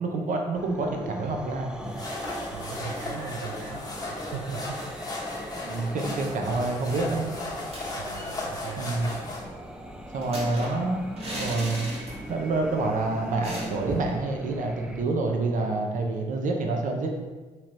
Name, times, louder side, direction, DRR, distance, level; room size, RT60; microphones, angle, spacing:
voice 1, 0.0-1.7 5.6-7.3 8.8-9.1 10.1-11.1 11.4-11.9 12.3-17.1, right 3 dB, 60° right, 2 dB, 0.7 m, -27 dB
sound 1, 0.5-15.0, right 1 dB, 5° right, 0.4 m, -42 dB
sound 2, 1.8-9.4, left 2 dB, 25° left, 1.1 m, -35 dB
voice 2, 2.5-5.2 7.3-7.6 7.9-8.9, right 6 dB, 80° right, 0 dB, 0.4 m, -39 dB
sound 3, 7.7-8.4 8.7-8.8 9.0-12.5 12.8-12.9 13.4-14.2, equal, 40° right, 1.3 m, -37 dB
3.1 x 2.9 x 3.9 m, 1.3 s
supercardioid pair, 60°, 15 cm